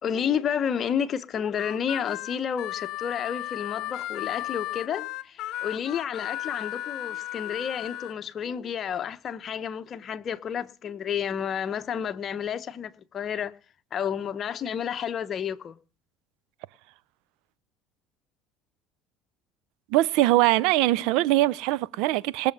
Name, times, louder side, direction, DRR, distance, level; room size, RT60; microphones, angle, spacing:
voice 1, 0.0-13.5 13.9-15.8, left 8 dB, 45° left, 1.0 m, -31 dB
Harmonica, 1.6-8.1, left 15 dB, 65° left, 0.6 m, -35 dB
voice 2, 19.9-22.5, right 16 dB, 75° right, 0.5 m, -22 dB
20.5 x 6.8 x 5.4 m
supercardioid pair, 90°, 0 cm